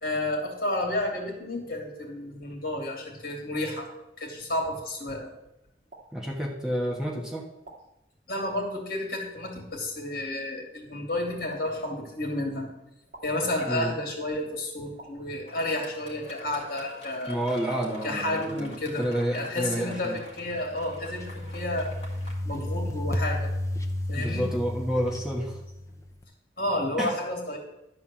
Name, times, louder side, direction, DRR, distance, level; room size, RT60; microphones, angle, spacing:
voice 1, 0.0-3.9 4.2-5.3 8.3-12.7 13.2-17.4 18.0-21.9 22.4-23.5 24.1-24.5 26.6-27.6, left 1 dB, 55° left, 1 dB, 2.7 m, -31 dB
sound 1, 5.9-6.1 7.6-7.8 9.4-9.6 11.5-11.6 13.1-13.3 15.0-15.1, right 2 dB, 45° right, 2.2 m, -46 dB
voice 2, 6.1-7.5 13.7-14.0 17.3-20.2 24.1-25.6 27.0-27.2, equal, 5° right, -1 dB, 1.3 m, -29 dB
Fireworks, 15.4-22.3, left 1 dB, 35° left, 2.3 m, -47 dB
sound 2, 20.5-26.1, left 1 dB, 15° left, 0.7 m, -32 dB
11.5 x 4.4 x 7.6 m, 0.88 s
head